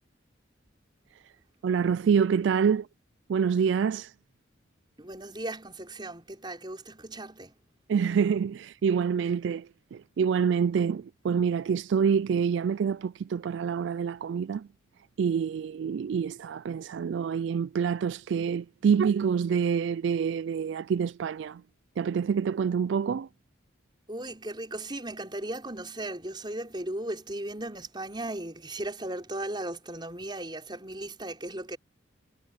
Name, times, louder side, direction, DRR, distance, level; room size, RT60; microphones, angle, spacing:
voice 1, 1.6-2.9 3.3-4.1 7.9-14.7 15.2-21.6 22.0-23.3, right 6 dB, 65° right, 0.3 m, -26 dB
voice 2, 5.0-7.6 24.1-31.8, right 1 dB, 25° right, 5.3 m, -37 dB
head